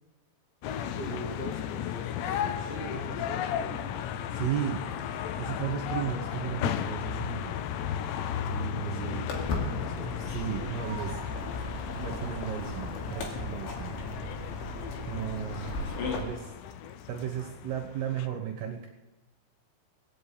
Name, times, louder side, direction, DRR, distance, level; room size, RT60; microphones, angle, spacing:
sound 1, 0.6-18.3, left 9 dB, 80° left, 2.6 m, -35 dB
voice 1, 0.9-1.9 2.2-4.0 8.8-10.2, right 2 dB, 35° left, -4 dB, 2.8 m, -42 dB
voice 2, 4.3-4.9 5.4-7.6 8.5-9.3 10.2-11.2 11.9-13.9 15.1-15.7 16.1-16.5 17.1-18.9, right 10 dB, 70° right, 2 dB, 2.7 m, -35 dB
Walk footsteps, 9.3-16.2, left 3 dB, 65° left, 4.3 m, -36 dB
19.0 x 8.4 x 8.5 m, 1.1 s
omnidirectional pair, 5.8 m